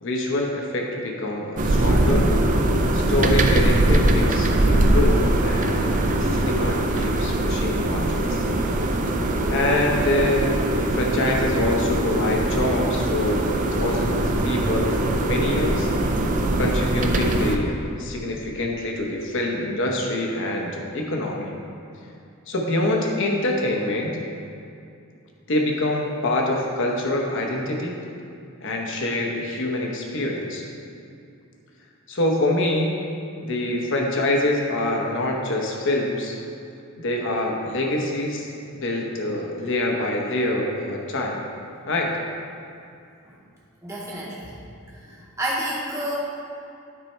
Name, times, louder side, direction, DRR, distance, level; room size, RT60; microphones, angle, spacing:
voice 1, 0.0-2.3 2.9-8.4 9.5-15.9 16.6-21.5 22.5-24.2 25.5-28.0 28.6-30.7 32.1-32.9 33.4-36.4 37.0-41.4 41.9-42.2, left 1 dB, 60° left, 0 dB, 1.0 m, -25 dB
sound 1, 1.6-17.6, right 1 dB, 35° right, 0.5 m, -21 dB
voice 2, 43.8-44.5 45.0-46.2, right 1 dB, 15° right, -6 dB, 1.0 m, -30 dB
9.8 x 4.2 x 4.5 m, 2.5 s
head